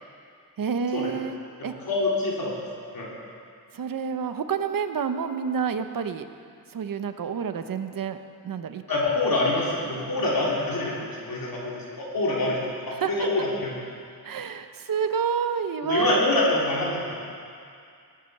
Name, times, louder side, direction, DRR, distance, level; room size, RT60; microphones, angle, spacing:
voice 1, 0.6-1.7 3.7-6.2 6.7-8.2 8.4-8.8 13.0-13.3 14.2-16.2, right 6 dB, 65° right, 9 dB, 0.9 m, -28 dB
voice 2, 1.6-2.5 2.9-3.1 8.9-13.7 15.8-17.1, left 2 dB, 70° left, -5 dB, 3.2 m, -26 dB
20.5 x 8.6 x 6.7 m, 2.3 s
wide cardioid pair, 140°, 36 cm